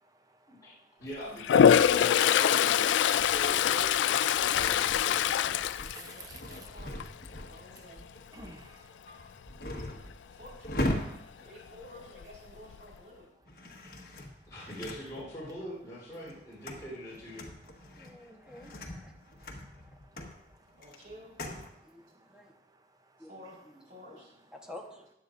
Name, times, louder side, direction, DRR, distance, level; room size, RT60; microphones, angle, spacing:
voice 1, 0.0-0.9 5.9-6.6 8.3-9.0 11.1-11.2 17.9-18.6 19.1-20.8 21.7-23.3, right 3 dB, 20° right, 6 dB, 0.7 m, -55 dB
voice 2, 1.0-5.7 9.1-9.2 14.5-17.4, equal, 20° left, -7 dB, 3.8 m, -42 dB
Toilet flush, 1.4-6.6 7.0-7.4 11.8-11.9 12.2-12.9, left 9 dB, 85° left, 0.3 m, -24 dB
sound 1, 2.9-12.7 13.4-15.6 16.0-21.7, left 1 dB, 55° left, 1.3 m, -41 dB
voice 3, 5.9-7.0 7.4-8.1 10.3-10.7 11.4-13.3 20.8-21.3 23.2-23.6 23.8-24.3, equal, 50° right, -4 dB, 4.4 m, -51 dB
voice 4, 17.9-19.1 19.9-20.0 21.8-22.5 23.2-23.3 23.6-24.2 24.5-25.1, left 1 dB, 5° right, 1 dB, 1.2 m, -50 dB
15.0 x 10.0 x 2.6 m, 0.80 s
head